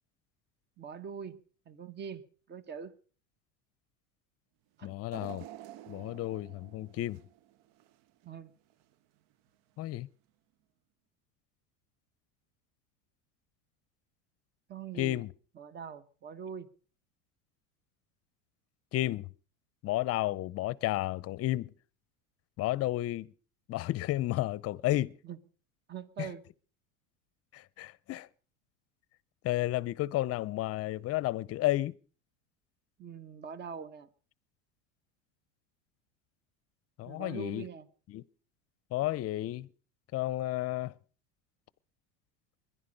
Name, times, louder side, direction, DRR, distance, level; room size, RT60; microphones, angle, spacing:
voice 1, 0.8-2.9 4.8-4.9 8.2-8.5 14.7-15.2 15.5-16.7 25.2-25.4 25.9-26.4 33.0-34.1 37.0-37.9, right 7 dB, 25° right, 1.1 m, -43 dB
voice 2, 4.8-5.4 5.9-7.2 9.8-10.1 14.9-15.3 18.9-19.3 19.8-21.7 22.6-23.3 23.7-25.1 26.2-26.3 27.5-28.3 29.4-31.9 37.0-37.7 38.1-38.2 38.9-39.7 40.1-40.9, left 16 dB, 40° left, 0.7 m, -32 dB
sound 1, 5.1-8.3 8.7-8.8 9.9-10.0, right 14 dB, 60° right, 0.7 m, -49 dB
21.0 x 11.0 x 5.3 m
supercardioid pair, 115°, 37 cm